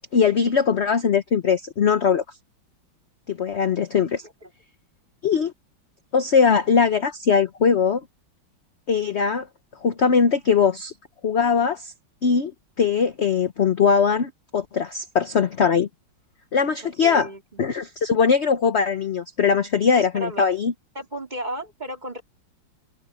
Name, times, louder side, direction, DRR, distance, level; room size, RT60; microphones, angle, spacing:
voice 1, 0.1-2.2 3.3-4.2 5.2-5.5 6.1-8.0 8.9-9.5 9.8-10.9 11.2-11.9 12.2-12.5 12.8-15.9 16.5-17.3 17.6-20.7, left 6 dB, 50° left, 0.9 m, -20 dB
voice 2, 16.8-17.7 19.9-20.5 20.9-22.2, right 1 dB, 20° right, 4.1 m, -34 dB
omnidirectional pair, 2.2 m